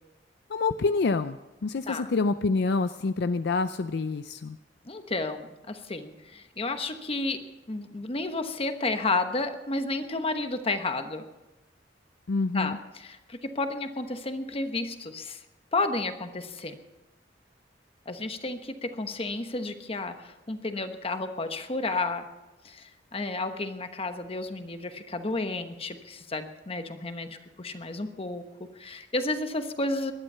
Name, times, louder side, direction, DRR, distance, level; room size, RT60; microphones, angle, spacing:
voice 1, 0.5-4.6 12.3-12.8, left 3 dB, 65° left, 11 dB, 0.5 m, -27 dB
voice 2, 4.8-11.3 12.5-15.4 15.7-16.8 18.1-22.3 22.6-28.4 28.8-30.1, left 2 dB, 30° left, 8 dB, 1.1 m, -32 dB
19.5 x 12.0 x 5.6 m, 1.0 s
head